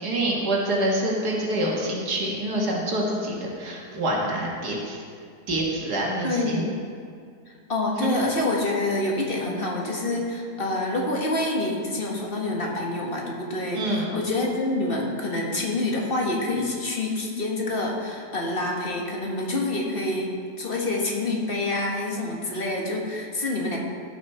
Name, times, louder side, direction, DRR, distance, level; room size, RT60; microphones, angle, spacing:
voice 1, 0.0-5.0 5.5-6.6 8.0-8.1 13.7-14.1, right 1 dB, 75° right, -2 dB, 2.0 m, -26 dB
voice 2, 6.2-6.7 7.5-20.3 20.6-23.8, left 2 dB, 35° left, -1 dB, 1.6 m, -27 dB
16.0 x 6.4 x 4.3 m, 2.2 s
omnidirectional pair, 1.7 m